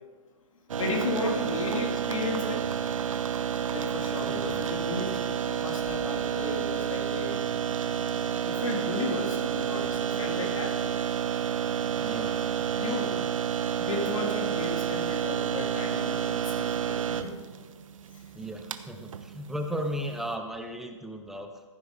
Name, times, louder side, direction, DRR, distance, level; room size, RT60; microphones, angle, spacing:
sound 1, 0.7-20.3, right 9 dB, 75° right, 1.0 m, -30 dB
voice 1, 0.8-2.6 3.7-7.4 8.4-11.0 12.7-13.1 13.7-17.3, left 2 dB, 75° left, 2 dB, 3.1 m, -34 dB
voice 2, 1.5-1.8 11.9-13.3 18.3-21.6, equal, ahead, 4 dB, 0.5 m, -37 dB
15.0 x 9.7 x 4.9 m, 1.3 s
hypercardioid pair, 170°, 17 cm